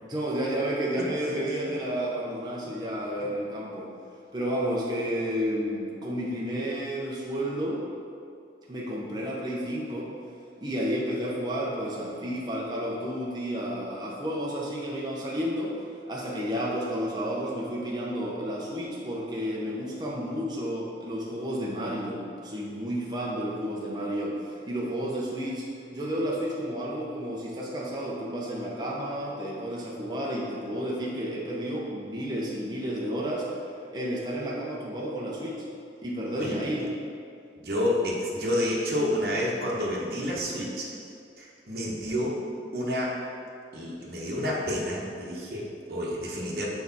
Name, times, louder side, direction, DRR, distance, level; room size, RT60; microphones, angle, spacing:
voice 1, 0.0-3.9 4.3-7.8 8.7-10.1 10.6-15.8 16.1-25.6 25.9-33.5 33.9-35.6 36.0-36.9, equal, 25° right, -4 dB, 0.8 m, -31 dB
voice 2, 0.9-1.4 1.7-1.8 36.3-36.5 37.6-40.8 41.4-42.4 42.7-43.2 43.7-46.6, left 1 dB, 55° right, -5 dB, 1.1 m, -29 dB
6.6 x 4.8 x 4.1 m, 2.4 s
head